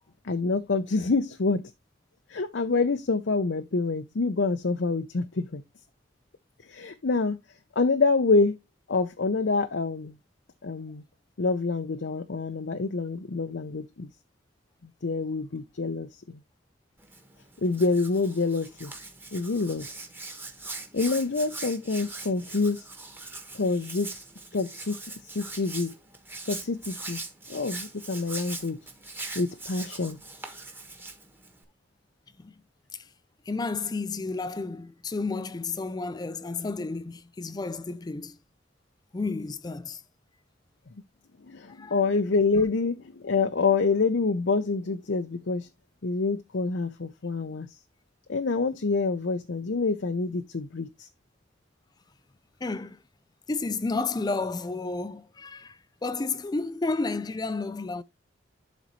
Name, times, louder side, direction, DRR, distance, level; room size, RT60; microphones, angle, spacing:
voice 1, 0.2-1.6 2.3-5.6 6.7-7.4 7.8-8.6 8.9-10.2 10.6-11.0 11.4-14.1 15.0-16.4 17.6-18.9 19.3-19.9 20.9-22.8 23.5-24.2 24.5-25.0 25.2-25.9 26.5-27.2 27.5-28.8 29.3-30.2 41.5-45.7 46.0-47.7 48.3-51.1, left 3 dB, 70° left, 0.6 m, -27 dB
Hands, 17.0-31.6, right 3 dB, 10° right, 1.3 m, -41 dB
voice 2, 33.5-38.4 39.1-40.0 41.7-42.0 52.6-53.0 53.5-58.0, left 3 dB, 20° left, 0.4 m, -31 dB
11.5 x 4.1 x 3.0 m
head